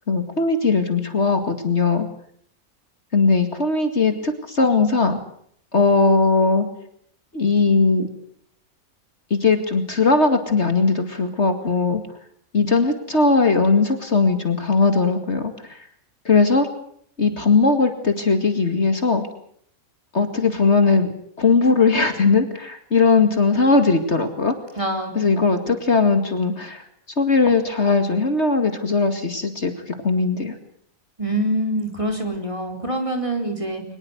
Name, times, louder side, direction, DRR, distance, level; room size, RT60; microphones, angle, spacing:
voice 1, 0.1-2.1 3.1-5.2 5.7-6.7 7.3-8.1 9.3-12.0 12.5-15.8 16.3-16.7 17.2-19.2 20.1-21.1 21.4-24.5 25.1-26.8 27.2-30.5, left 4 dB, 50° left, 7 dB, 2.5 m, -19 dB
voice 2, 24.8-25.1 31.2-33.8, right 1 dB, 20° right, 4 dB, 4.1 m, -25 dB
23.5 x 20.5 x 8.0 m, 0.64 s
omnidirectional pair, 1.6 m